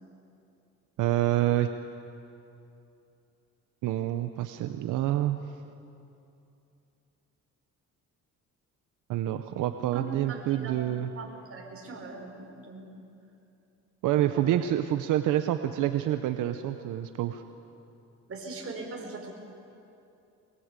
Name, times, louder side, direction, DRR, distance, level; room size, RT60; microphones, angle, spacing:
voice 1, 1.0-1.7 3.8-5.4 9.1-11.1 14.0-17.4, right 13 dB, 90° right, 8 dB, 0.9 m, -27 dB
voice 2, 9.9-10.7 11.2-13.0 14.1-14.6 18.3-19.3, right 3 dB, 50° right, 1 dB, 5.4 m, -41 dB
23.0 x 22.5 x 8.3 m, 2.7 s
cardioid pair, 90°, 30 cm